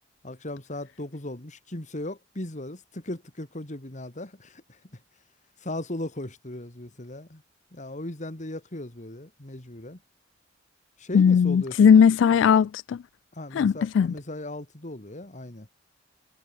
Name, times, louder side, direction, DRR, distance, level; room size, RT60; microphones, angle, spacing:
voice 1, 0.2-5.0 5.6-7.4 7.7-10.0 11.0-11.9 13.3-15.7, left 1 dB, 40° left, 2.4 m, -37 dB
voice 2, 11.1-13.0 13.5-14.1, left 7 dB, 75° left, 0.3 m, -18 dB
head